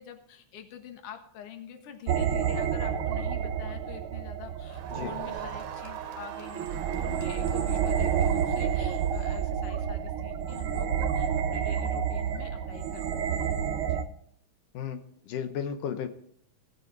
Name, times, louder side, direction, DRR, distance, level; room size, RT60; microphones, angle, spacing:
voice 1, 0.0-13.1 13.3-13.6 13.9-14.0, left 9 dB, 55° left, 5 dB, 2.1 m, -46 dB
sound 1, 2.1-14.0, right 8 dB, 90° right, 1.1 m, -29 dB
Crowd, 4.7-9.5, right 7 dB, 70° right, 1.9 m, -46 dB
voice 2, 15.3-16.1, left 8 dB, 85° left, 7 dB, 2.6 m, -33 dB
18.5 x 7.0 x 4.7 m, 0.65 s
omnidirectional pair, 3.6 m